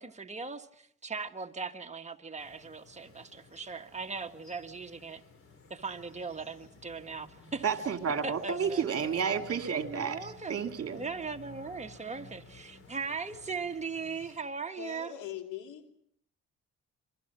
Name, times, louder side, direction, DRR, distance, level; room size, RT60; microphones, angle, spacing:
voice 1, 0.0-5.2 5.7-7.7 8.2-8.9 9.5-9.6 9.9-10.6 10.9-15.1, right 5 dB, 25° right, 6 dB, 1.5 m, -39 dB
sound 1, 2.4-14.4, left 4 dB, 45° left, 4.5 m, -54 dB
voice 2, 7.6-11.0, right 6 dB, 50° right, 7 dB, 2.5 m, -31 dB
voice 3, 14.8-15.9, left 10 dB, 85° left, 6 dB, 2.9 m, -41 dB
27.0 x 24.5 x 6.1 m, 0.67 s
cardioid pair, 90°, 30 cm